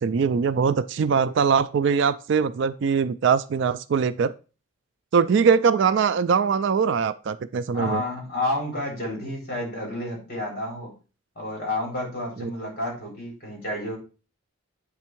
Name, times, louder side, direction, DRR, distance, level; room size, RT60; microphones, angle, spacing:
voice 1, 0.0-4.3 5.1-8.0 12.4-12.5, right 6 dB, 55° right, 14 dB, 0.3 m, -22 dB
voice 2, 7.7-10.9 11.3-14.0, left 1 dB, 45° left, -1 dB, 3.3 m, -30 dB
8.3 x 3.6 x 4.5 m, 0.34 s
head